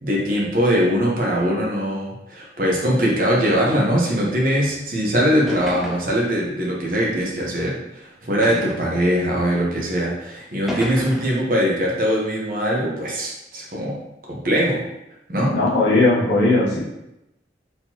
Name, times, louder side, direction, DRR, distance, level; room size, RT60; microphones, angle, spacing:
voice 1, 0.0-14.0 14.3-14.8 15.3-15.6, equal, 50° right, -3 dB, 1.1 m, -21 dB
sound 1, 4.8-4.9 5.5-6.2 7.1-7.2 8.4-8.9 9.8-9.9 10.7-11.4, left 1 dB, ahead, 0.5 m, -32 dB
voice 2, 15.5-16.8, left 2 dB, 75° left, -6 dB, 1.1 m, -17 dB
4.4 x 3.9 x 2.9 m, 0.90 s
head